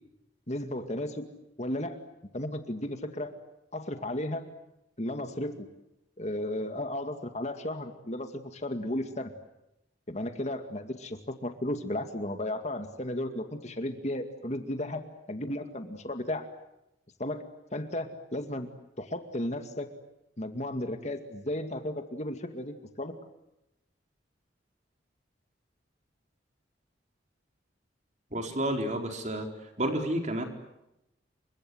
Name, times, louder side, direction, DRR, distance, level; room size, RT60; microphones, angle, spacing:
voice 1, 0.5-1.2 1.6-2.0 2.3-3.3 3.7-4.4 5.0-5.7 6.2-9.3 10.1-16.5 17.2-17.4 17.7-18.7 19.0-19.9 20.4-23.1, left 1 dB, 35° left, 7 dB, 2.2 m, -34 dB
voice 2, 28.3-29.5 29.8-30.4, right 1 dB, 40° right, 4 dB, 4.4 m, -30 dB
29.0 x 25.5 x 7.9 m, 0.87 s
head